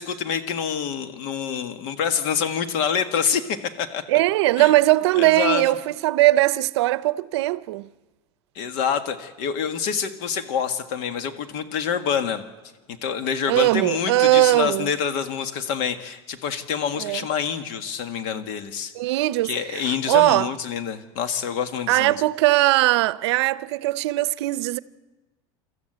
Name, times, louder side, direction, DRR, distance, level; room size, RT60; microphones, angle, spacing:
voice 1, 0.0-4.0 4.6-4.7 5.2-5.6 8.6-12.4 13.0-18.9 19.4-22.2, left 7 dB, 65° left, 1.8 m, -26 dB
voice 2, 4.1-7.9 13.5-14.9 17.0-17.2 18.9-20.5 21.9-24.8, right 17 dB, 85° right, 0.6 m, -20 dB
26.0 x 14.0 x 8.0 m
supercardioid pair, 140°, 14 cm